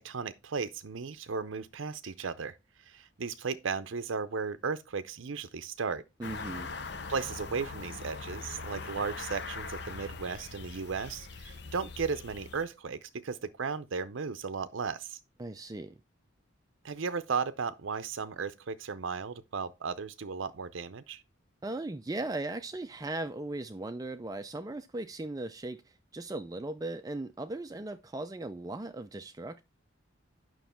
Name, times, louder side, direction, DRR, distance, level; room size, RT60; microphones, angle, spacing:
voice 1, 0.0-6.0 7.1-15.2 16.8-21.2, right 5 dB, 70° right, 0.6 m, -35 dB
sound 1, 6.2-12.7, left 4 dB, 55° left, 0.8 m, -42 dB
voice 2, 6.2-6.7 15.4-16.0 21.6-29.6, right 2 dB, 20° right, 0.4 m, -38 dB
9.3 x 6.1 x 4.3 m
head